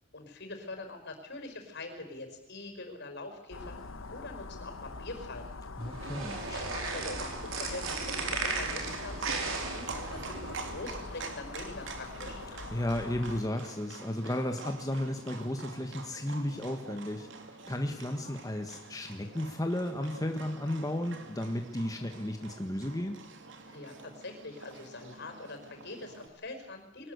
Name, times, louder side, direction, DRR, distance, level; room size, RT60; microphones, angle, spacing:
voice 1, 0.1-5.5 6.3-9.4 9.7-12.4 23.6-27.1, left 2 dB, 60° left, 6 dB, 5.3 m, -43 dB
sound 1, 3.5-13.4, left 3 dB, 85° left, 1.2 m, -44 dB
voice 2, 5.8-6.4 12.7-17.3 17.7-23.2, left 1 dB, 20° left, 5 dB, 1.5 m, -34 dB
sound 2, 5.8-10.8, right 4 dB, 85° right, 4.9 m, -36 dB
Livestock farm animals working animals, 6.3-26.3, right 4 dB, 65° right, 2.9 m, -46 dB
23.0 x 19.5 x 8.2 m, 0.91 s
head